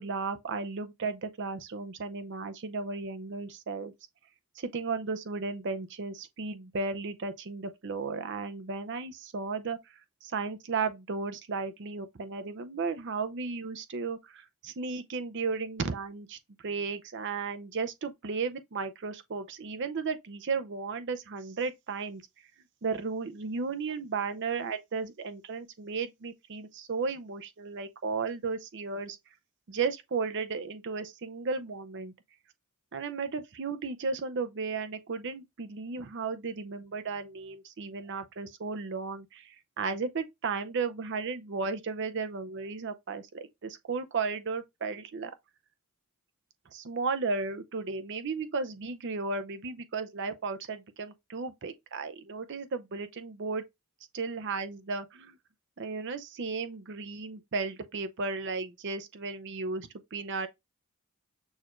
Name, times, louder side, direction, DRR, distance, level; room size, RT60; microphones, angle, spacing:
voice 1, 0.0-3.9 4.6-9.8 10.2-22.2 22.8-29.2 29.7-32.1 32.9-45.3 46.7-53.6 54.1-55.4 55.8-60.5, right 4 dB, 55° right, 0.5 m, -34 dB
6.3 x 2.5 x 3.0 m
head